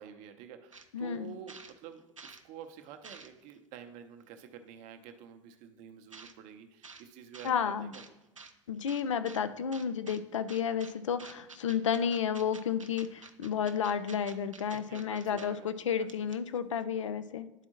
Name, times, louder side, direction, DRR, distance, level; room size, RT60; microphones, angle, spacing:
voice 1, 0.0-8.0 14.7-15.7 16.0-16.1, right 9 dB, 45° right, 7 dB, 0.7 m, -49 dB
sound 1, 0.7-0.9 1.2-2.4 2.8-3.6 4.4-4.5 6.1-6.4 6.8-7.0 7.3-7.5 7.9-8.5 8.9-9.4 9.7-10.2 10.5-10.9 11.2-15.5 15.8-15.9 16.1-16.6, right 4 dB, 85° right, 0.5 m, -50 dB
voice 2, 0.9-1.3 7.4-7.9 8.7-17.6, left 7 dB, 75° left, 12 dB, 0.4 m, -32 dB
10.5 x 4.3 x 2.9 m, 1.0 s
figure-of-eight pair, 75°, 16 cm